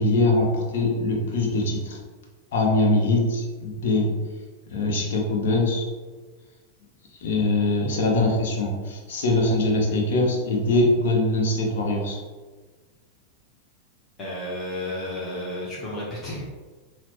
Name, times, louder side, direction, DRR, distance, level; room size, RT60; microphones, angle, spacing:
voice 1, 0.0-2.0 2.5-4.1 4.7-5.9 7.2-12.2, left 2 dB, 55° left, 0 dB, 0.9 m, -22 dB
voice 2, 14.2-16.4, left 1 dB, 15° left, -8 dB, 1.1 m, -32 dB
5.9 x 2.2 x 3.0 m, 1.4 s
figure-of-eight pair, 90°, 0 cm